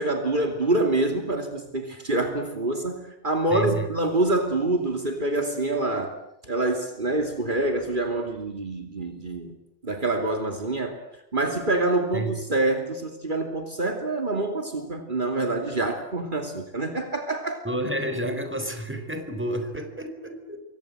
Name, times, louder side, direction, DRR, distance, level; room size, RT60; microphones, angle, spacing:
voice 1, 0.0-6.2 6.4-9.5 9.8-17.6, right 2 dB, 50° right, 5 dB, 3.0 m, -26 dB
voice 2, 3.5-3.9 12.1-12.3 17.6-20.6, right 1 dB, 10° right, 7 dB, 4.2 m, -30 dB
28.0 x 24.0 x 7.9 m, 0.80 s
omnidirectional pair, 1.0 m